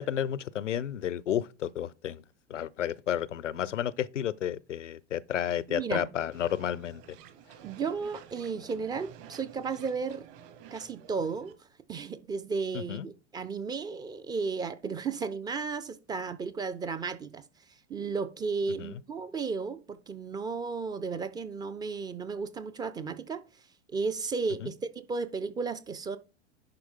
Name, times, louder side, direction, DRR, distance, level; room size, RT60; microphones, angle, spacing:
voice 1, 0.0-2.2 2.5-7.2 12.7-13.1 18.8-18.9 24.6-24.7, left 10 dB, 85° left, 0.5 m, -32 dB
voice 2, 5.7-6.1 7.6-10.3 10.7-11.6 11.9-17.4 17.9-23.4 23.9-26.2, right 5 dB, 10° right, 0.3 m, -34 dB
sound 1, 6.3-11.5, right 8 dB, 45° right, 1.4 m, -51 dB
10.5 x 4.5 x 3.6 m
figure-of-eight pair, 95°, 36 cm